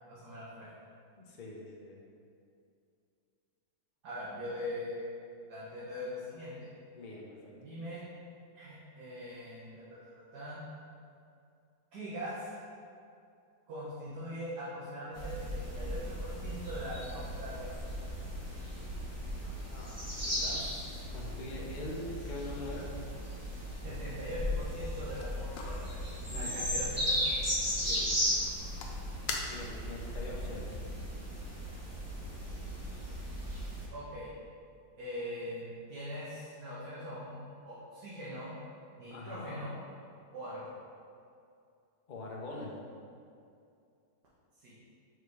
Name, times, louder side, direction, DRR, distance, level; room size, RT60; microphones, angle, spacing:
voice 1, 0.1-0.7 4.0-5.1 5.5-6.7 7.5-8.0 8.5-10.6 11.9-12.6 13.7-17.8 23.8-26.0 26.3-27.2 33.9-34.3 35.0-37.4 37.7-38.5 39.0-39.8 40.3-40.7 44.6-44.7, equal, 60° right, -9 dB, 1.7 m, -41 dB
voice 2, 1.2-2.0 6.9-7.6 19.4-22.9 26.2-26.6 27.8-28.1 29.4-30.8 39.1-39.6 42.1-42.7, left 2 dB, 50° left, -2 dB, 0.5 m, -44 dB
sound 1, 15.1-33.9, equal, 10° right, 0.9 m, -36 dB
sound 2, 24.8-30.0, left 4 dB, 80° left, 1.3 m, -45 dB
4.9 x 4.8 x 4.7 m, 2.5 s
omnidirectional pair, 2.0 m